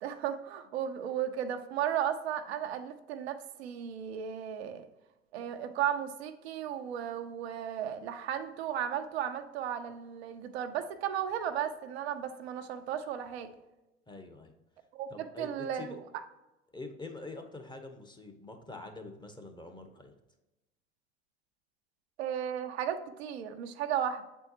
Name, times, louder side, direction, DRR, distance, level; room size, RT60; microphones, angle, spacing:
voice 1, 0.0-4.8 5.3-13.5 14.9-16.0 22.2-24.3, right 9 dB, 75° right, 7 dB, 0.7 m, -35 dB
voice 2, 14.1-14.5 15.1-16.0 16.7-20.1, left 2 dB, 15° left, 5 dB, 1.0 m, -45 dB
7.6 x 4.5 x 2.9 m, 0.99 s
hypercardioid pair, 75°, 32 cm